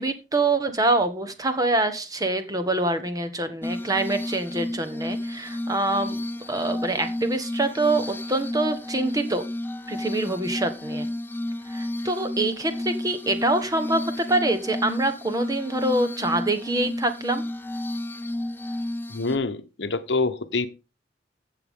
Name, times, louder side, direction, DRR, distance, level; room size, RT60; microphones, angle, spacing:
voice 1, 0.0-6.2 6.5-9.4 9.9-11.1 11.7-17.4, right 2 dB, 20° right, 1.3 m, -25 dB
Glass, 3.6-19.4, left 1 dB, 10° left, 0.6 m, -32 dB
voice 2, 19.1-20.7, left 3 dB, 70° left, 1.1 m, -26 dB
15.5 x 6.9 x 3.7 m
head